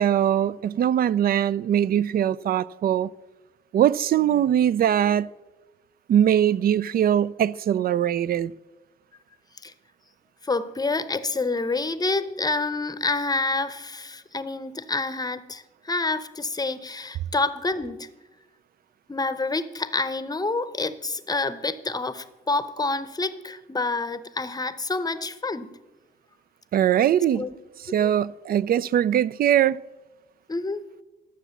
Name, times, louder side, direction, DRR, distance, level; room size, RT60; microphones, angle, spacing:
voice 1, 0.0-3.1 3.7-5.3 6.1-8.5 26.7-27.5 27.9-29.8, right 10 dB, 50° right, 0.4 m, -21 dB
voice 2, 10.4-18.1 19.1-25.7 27.3-27.5 27.9-28.1 30.5-30.8, left 3 dB, 20° left, 0.7 m, -28 dB
12.0 x 7.2 x 7.0 m
cardioid pair, 90°, 20 cm